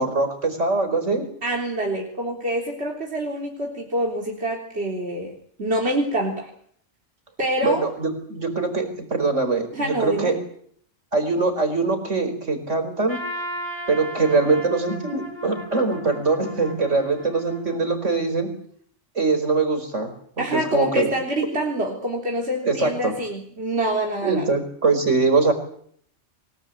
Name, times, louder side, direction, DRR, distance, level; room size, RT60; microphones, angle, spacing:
voice 1, 0.0-1.3 7.6-10.4 11.1-13.2 13.9-18.5 19.1-21.1 22.6-23.1 24.2-25.5, right 3 dB, 75° right, 8 dB, 5.0 m, -22 dB
voice 2, 1.4-6.5 7.4-7.9 9.7-10.3 16.9-17.0 20.4-24.5, right 1 dB, 55° right, -1 dB, 4.0 m, -26 dB
Trumpet, 13.1-18.2, equal, 20° left, 3.7 m, -36 dB
27.0 x 19.0 x 9.0 m, 0.64 s
omnidirectional pair, 1.3 m